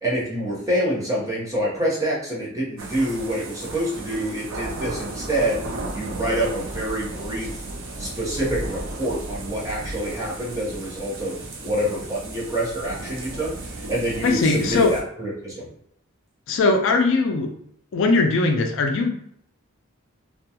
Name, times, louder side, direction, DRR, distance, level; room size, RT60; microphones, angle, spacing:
voice 1, 0.0-5.6 5.9-7.5 8.0-15.7, right 1 dB, 15° right, -6 dB, 0.7 m, -27 dB
sound 1, 2.8-15.0, right 2 dB, 65° right, 0.5 m, -34 dB
voice 2, 14.2-15.0 16.5-17.5 17.9-19.1, left 3 dB, 60° left, 4 dB, 0.4 m, -20 dB
2.3 x 2.2 x 2.7 m, 0.70 s
head